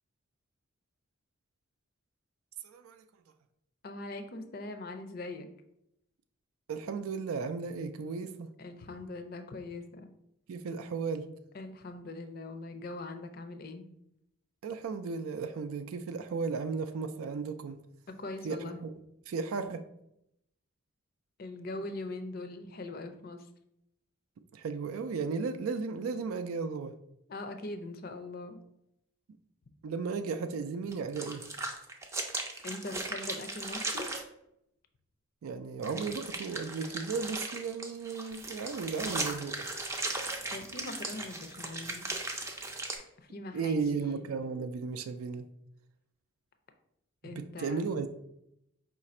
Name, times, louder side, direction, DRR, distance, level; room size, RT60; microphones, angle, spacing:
voice 1, 2.6-3.0 6.7-8.5 10.5-11.3 14.6-17.8 18.4-18.9 19.3-19.8 24.5-26.9 29.8-31.4 35.4-39.7 43.5-45.5 47.3-48.1, right 5 dB, 85° right, 0.4 m, -35 dB
voice 2, 3.8-5.5 8.6-10.1 11.5-13.9 18.1-18.8 21.4-23.5 27.3-28.6 32.6-34.1 40.5-42.1 43.2-44.3 47.2-47.8, left 2 dB, 45° left, 0.4 m, -41 dB
sound 1, 30.9-34.2 35.8-43.0, right 2 dB, 15° right, 0.4 m, -37 dB
4.8 x 2.5 x 4.1 m
head